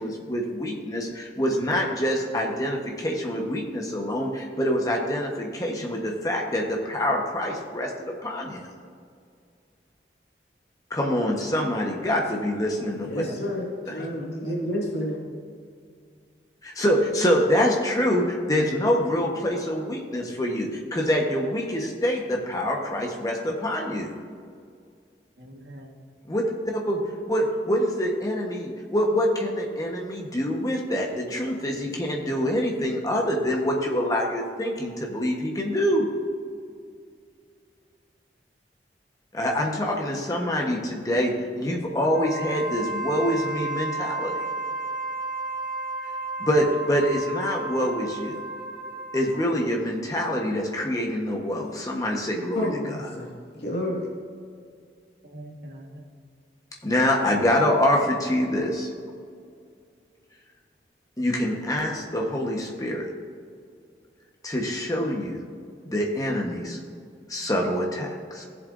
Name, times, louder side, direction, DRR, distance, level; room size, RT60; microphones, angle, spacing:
voice 1, 0.0-8.7 10.9-13.1 16.6-24.1 26.3-27.0 27.3-36.1 39.3-44.4 46.4-48.3 49.1-52.7 56.8-58.9 61.2-63.1 64.4-65.4 65.8-66.8 67.3-68.4, equal, 20° left, 0 dB, 1.2 m, -25 dB
voice 2, 13.0-15.2 52.5-54.1, left 1 dB, 75° left, -4 dB, 2.1 m, -30 dB
voice 3, 14.1-14.6 25.4-25.9 55.2-56.0, right 1 dB, 75° right, -1 dB, 1.6 m, -40 dB
Wind instrument woodwind instrument, 42.1-49.5, right 2 dB, 50° right, 1.9 m, -33 dB
16.5 x 7.4 x 2.6 m, 2.2 s
head